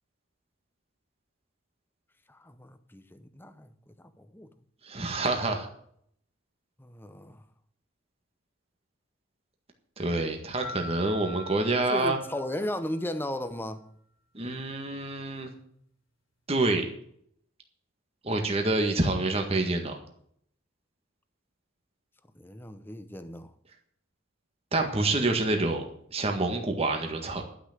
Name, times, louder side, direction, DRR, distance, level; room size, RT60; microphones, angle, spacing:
voice 1, 2.3-4.5 6.8-7.4 11.9-13.8 22.4-23.5, left 1 dB, 10° left, 0.7 m, -36 dB
voice 2, 4.8-5.7 10.0-12.2 14.3-15.5 16.5-16.8 18.2-20.0 24.7-25.8 26.1-27.4, right 2 dB, 30° right, 1.8 m, -27 dB
sound 1, 10.6-13.3, left 2 dB, 70° left, 2.7 m, -44 dB
11.5 x 6.1 x 9.2 m
head